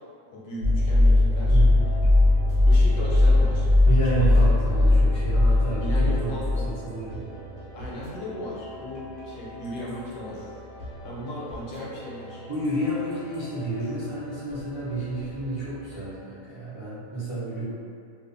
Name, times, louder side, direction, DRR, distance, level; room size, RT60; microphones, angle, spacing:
voice 1, 0.3-1.6 2.3-3.7 4.2-5.0 5.7-6.8 7.7-10.5 11.0-12.4, equal, 90° left, -5 dB, 1.2 m, -36 dB
sound 1, 0.6-7.8, left 2 dB, 75° right, 1.1 m, -19 dB
voice 2, 1.5-1.9 3.9-7.2 12.5-17.7, right 2 dB, 40° right, -15 dB, 0.4 m, -30 dB
sound 2, 1.7-16.2, equal, 65° left, 0.9 m, -44 dB
2.5 x 2.3 x 2.5 m, 2.3 s
omnidirectional pair, 1.8 m